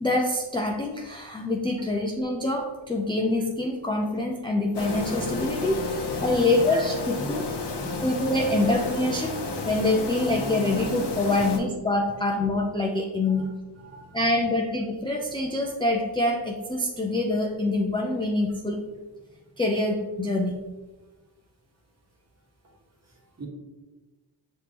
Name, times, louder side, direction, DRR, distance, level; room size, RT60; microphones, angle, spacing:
voice 1, 0.0-7.5 8.0-9.4 9.6-13.5 14.1-18.8 19.6-20.6, left 2 dB, 10° left, -1 dB, 0.4 m, -25 dB
sound 1, 4.7-11.6, left 3 dB, 55° left, 0.8 m, -31 dB
voice 2, 6.1-6.8 7.1-7.4 7.7-8.2 13.3-13.5 13.8-14.2 23.1-23.5, right 3 dB, 30° right, -1 dB, 1.3 m, -42 dB
5.0 x 3.3 x 2.9 m, 1.2 s
cardioid pair, 60°, 49 cm